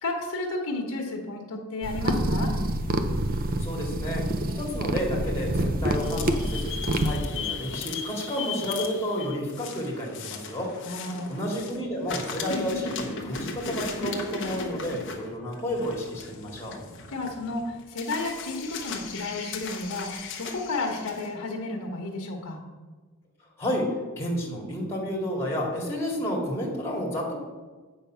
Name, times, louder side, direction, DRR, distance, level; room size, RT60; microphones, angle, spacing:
voice 1, 0.0-2.5 10.8-11.3 17.1-22.6, left 2 dB, 90° left, -1 dB, 1.4 m, -32 dB
sound 1, 1.8-7.1, right 1 dB, 40° right, 0.6 m, -27 dB
voice 2, 3.6-4.2 4.6-10.7 11.3-16.7 23.6-23.9 24.2-27.3, equal, 10° left, -3 dB, 2.1 m, -31 dB
sound 2, 5.9-11.8 12.1-21.3, left 4 dB, 55° left, 1.0 m, -37 dB
8.3 x 5.5 x 5.7 m, 1.3 s
head